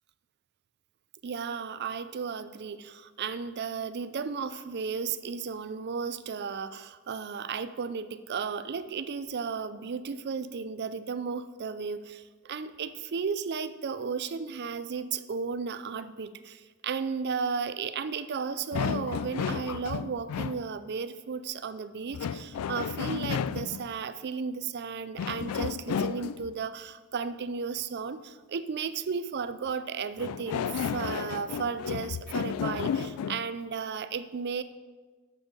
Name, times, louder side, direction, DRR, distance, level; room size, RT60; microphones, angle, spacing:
voice 1, 1.2-34.6, right 5 dB, 50° right, 13 dB, 0.4 m, -34 dB
sound 1, 18.7-20.6 22.1-23.9 25.2-26.5 30.2-33.4, left 7 dB, 90° left, 0.3 m, -32 dB
8.0 x 6.9 x 5.4 m, 1.3 s
head